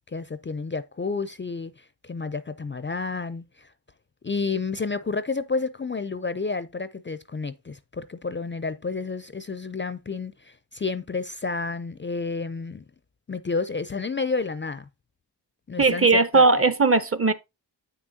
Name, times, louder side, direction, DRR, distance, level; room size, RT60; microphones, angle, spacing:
voice 1, 0.1-3.7 4.2-12.8 13.3-14.9 15.7-16.5, left 4 dB, 30° left, 0.5 m, -30 dB
voice 2, 15.8-17.3, right 3 dB, 30° right, 0.8 m, -18 dB
7.8 x 6.2 x 2.7 m
cardioid pair, 60°, 42 cm